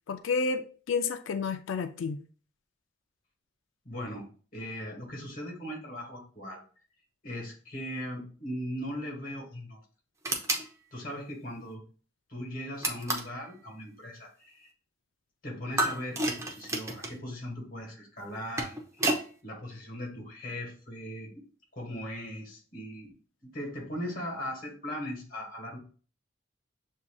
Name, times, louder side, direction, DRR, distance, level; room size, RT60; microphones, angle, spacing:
voice 1, 0.1-2.2, left 4 dB, 80° left, 8 dB, 0.4 m, -30 dB
voice 2, 3.8-6.6 7.2-9.8 10.9-11.8 12.3-14.7 15.4-21.4 21.7-23.1 23.4-25.8, equal, 45° left, -1 dB, 1.5 m, -39 dB
sound 1, 10.2-10.7 12.8-13.4 15.8-17.2 18.3-19.3, right 2 dB, 15° right, 0.6 m, -30 dB
7.1 x 2.7 x 2.3 m, 0.40 s
head